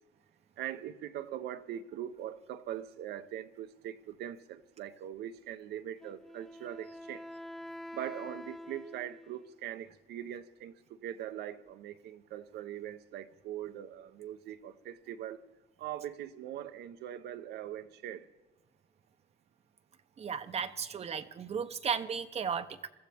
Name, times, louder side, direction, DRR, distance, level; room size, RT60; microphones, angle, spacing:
voice 1, 0.6-7.3 7.9-15.4 15.8-18.3, right 11 dB, 75° right, 11 dB, 0.8 m, -42 dB
Wind instrument woodwind instrument, 6.0-9.6, left 1 dB, 5° left, 0.4 m, -46 dB
voice 2, 20.2-22.9, right 6 dB, 40° right, 9 dB, 0.7 m, -35 dB
22.0 x 14.5 x 3.5 m, 1.2 s
cardioid pair, 110°, 17 cm